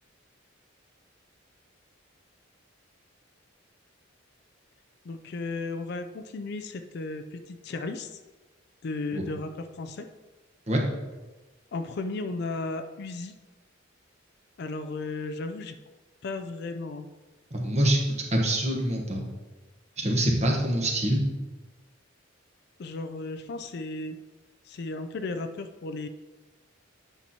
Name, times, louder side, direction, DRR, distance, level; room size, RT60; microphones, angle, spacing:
voice 1, 5.0-8.1 8.8-10.1 11.7-13.3 14.6-15.7 16.2-17.1 22.8-24.2 24.7-26.1, left 3 dB, 55° left, 8 dB, 0.4 m, -34 dB
voice 2, 17.5-19.3 20.0-21.2, right 1 dB, 35° right, 0 dB, 1.1 m, -25 dB
8.9 x 5.9 x 2.8 m, 1.2 s
head